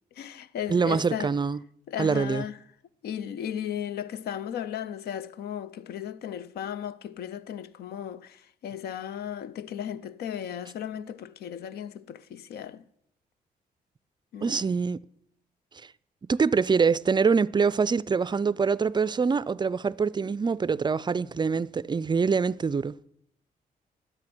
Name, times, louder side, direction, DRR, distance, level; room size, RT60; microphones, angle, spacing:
voice 1, 0.1-1.3 1.9-2.6 3.0-12.9 14.3-14.7, left 9 dB, 85° left, 0.5 m, -35 dB
voice 2, 0.7-1.6 2.0-2.4 14.4-15.0 16.3-23.0, right 5 dB, 30° right, 0.4 m, -24 dB
11.5 x 7.8 x 6.0 m
cardioid pair, 70°, 16 cm